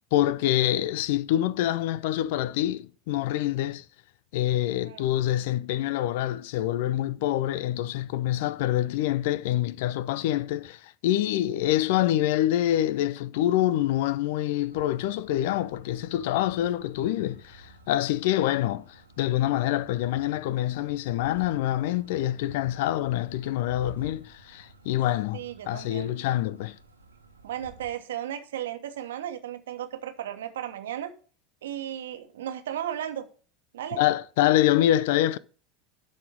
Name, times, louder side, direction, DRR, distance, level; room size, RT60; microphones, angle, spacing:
voice 1, 0.1-3.8 4.3-25.4 25.7-26.8 34.0-35.4, left 13 dB, 60° left, 0.4 m, -26 dB
sound 1, 14.7-27.9, right 3 dB, 85° right, 1.4 m, -51 dB
voice 2, 25.3-26.1 27.4-31.1 31.6-33.2 33.7-34.0, right 11 dB, 65° right, 1.3 m, -35 dB
12.5 x 4.3 x 5.1 m
figure-of-eight pair, 75°, 0 cm